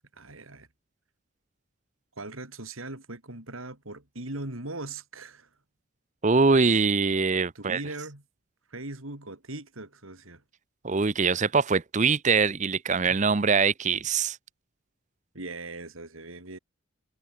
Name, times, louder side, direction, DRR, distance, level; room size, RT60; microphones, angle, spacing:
voice 1, 0.2-0.7 2.2-5.5 7.5-8.2 8.7-10.4 15.3-16.6, right 2 dB, 75° right, 4.0 m, -39 dB
voice 2, 6.2-7.8 10.8-14.4, right 4 dB, 35° right, 0.7 m, -23 dB
head